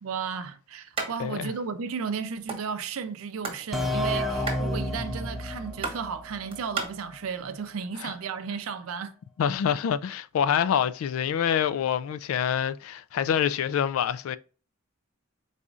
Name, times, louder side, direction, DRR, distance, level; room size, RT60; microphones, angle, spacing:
voice 1, 0.0-9.2, right 6 dB, 85° right, 0.5 m, -34 dB
sound 1, 0.9-1.1 1.4-1.5 1.8-2.6 3.1-3.7 3.9-6.9, right 4 dB, 25° right, 1.1 m, -34 dB
voice 2, 1.2-1.5 8.0-8.1 9.4-14.4, left 8 dB, 80° left, 0.3 m, -26 dB
sound 2, 3.7-7.3, left 1 dB, ahead, 0.4 m, -31 dB
4.9 x 4.1 x 2.4 m
head